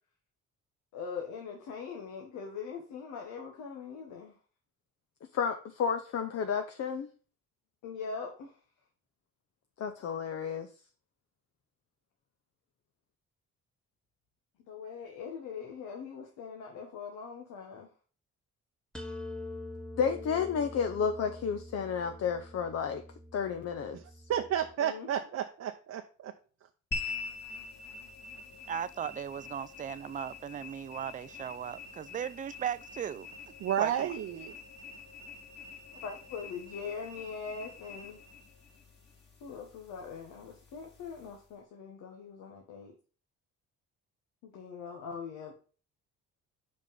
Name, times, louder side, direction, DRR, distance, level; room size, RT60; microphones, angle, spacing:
voice 1, 0.9-4.3 7.8-8.5 14.7-17.9 24.8-25.1 36.0-38.2 39.4-42.9 44.4-45.5, left 5 dB, 90° left, 1.3 m, -42 dB
voice 2, 5.3-7.1 9.8-10.7 20.0-23.0 23.3-24.0, left 6 dB, 55° left, 0.7 m, -31 dB
sound 1, 18.9-24.7, left 1 dB, ahead, 1.0 m, -45 dB
voice 3, 24.3-26.3 33.6-34.5, right 10 dB, 55° right, 0.7 m, -32 dB
sound 2, 26.9-41.5, left 4 dB, 35° left, 2.3 m, -45 dB
voice 4, 28.7-33.3 33.8-34.1, right 9 dB, 25° right, 0.3 m, -37 dB
5.4 x 5.2 x 5.4 m
cardioid pair, 90°, 30 cm